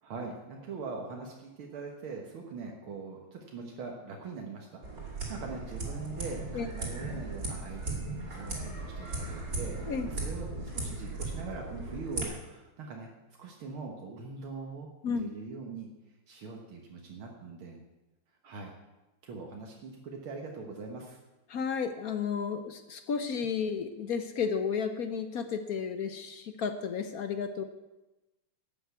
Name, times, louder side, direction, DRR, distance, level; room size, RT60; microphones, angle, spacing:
voice 1, 0.0-13.1 13.4-15.9 16.3-17.8 18.4-18.7 19.2-21.2, right 4 dB, 75° right, 1 dB, 2.2 m, -42 dB
sound 1, 4.8-12.3, right 2 dB, 40° right, 3.5 m, -37 dB
voice 2, 21.5-27.6, left 6 dB, 60° left, 9 dB, 1.0 m, -32 dB
12.0 x 8.2 x 8.2 m, 1.0 s
omnidirectional pair, 2.4 m